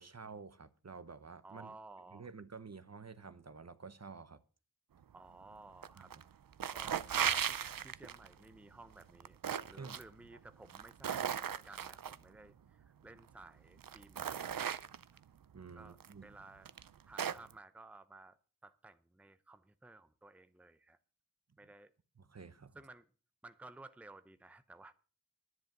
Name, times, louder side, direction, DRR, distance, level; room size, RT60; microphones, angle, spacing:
voice 1, 0.0-1.7 2.1-4.4 6.0-6.1 9.7-10.0 15.5-16.3 22.2-22.8, right 5 dB, 45° right, 0.9 m, -50 dB
voice 2, 1.4-2.3 5.1-6.1 6.7-9.4 9.7-11.2 11.5-14.8 15.8-16.7 17.1-18.4 18.6-21.0 21.6-21.9 22.7-23.1 23.4-24.9, right 2 dB, 5° right, 0.7 m, -56 dB
sound 1, 5.8-6.2 6.5-8.3 9.0-10.0 10.7-12.2 13.2-13.3 13.8-15.2 16.0-16.1 16.7-17.5, right 8 dB, 65° right, 0.6 m, -37 dB
10.5 x 9.7 x 5.9 m
wide cardioid pair, 65°, 36 cm